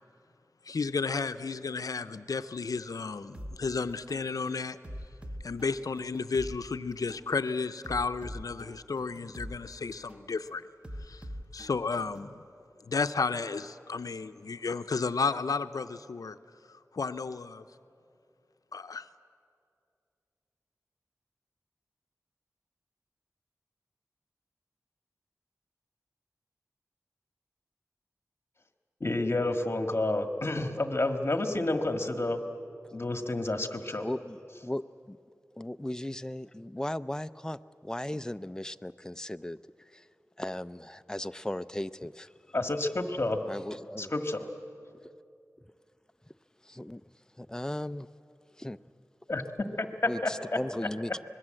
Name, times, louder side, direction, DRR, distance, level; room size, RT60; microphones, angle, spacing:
voice 1, 0.7-4.8 5.4-10.6 11.1-11.2 11.5-12.4 12.9-16.4 16.9-17.6 18.7-19.1, left 4 dB, 85° left, 10 dB, 0.6 m, -32 dB
sound 1, 3.3-3.6 4.1-4.3 4.8-6.6 7.1-7.3 7.8-9.6 10.1-10.3 10.8-12.3, equal, 20° right, 1.2 m, -42 dB
voice 2, 29.0-32.4 32.9-34.1 42.5-43.4 44.0-44.5 49.3-49.4 49.8-50.3, left 2 dB, 45° left, 6 dB, 1.7 m, -29 dB
voice 3, 34.0-34.8 35.1-35.2 35.6-39.6 39.9-40.0 40.4-42.3 43.5-44.1 46.7-47.0 47.4-48.1 48.6-48.8 50.0-51.1, left 1 dB, 10° left, 13 dB, 0.5 m, -36 dB
25.5 x 21.0 x 7.7 m, 2.5 s
wide cardioid pair, 80°, 6 cm